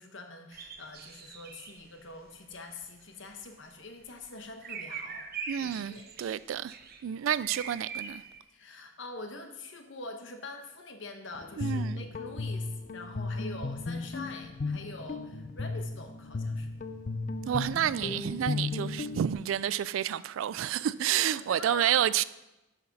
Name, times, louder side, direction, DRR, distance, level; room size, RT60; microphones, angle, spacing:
voice 1, 0.0-5.3 5.6-6.2 8.5-16.7 17.4-17.6 21.3-22.0, left 2 dB, 65° left, 1.1 m, -44 dB
sound 1, 0.5-8.4, right 6 dB, 50° right, 0.7 m, -43 dB
voice 2, 5.5-6.7 7.0-8.2 11.6-12.1 17.5-22.2, right 10 dB, 80° right, 0.3 m, -29 dB
Guitar, 11.3-19.3, left 3 dB, 40° left, 0.5 m, -35 dB
10.5 x 5.9 x 4.1 m
head